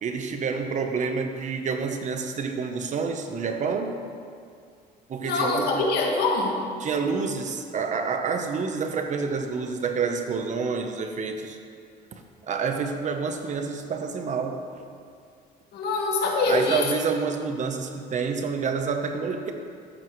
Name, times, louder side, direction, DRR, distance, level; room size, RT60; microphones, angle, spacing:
voice 1, 0.0-4.0 5.1-5.8 6.8-11.6 12.1-12.2 12.5-14.9 16.5-19.5, right 5 dB, 45° right, 5 dB, 1.0 m, -28 dB
voice 2, 5.2-6.6 15.7-16.9, left 3 dB, 70° left, 0 dB, 1.9 m, -24 dB
14.0 x 9.4 x 3.2 m, 2.3 s
cardioid pair, 110°, 17 cm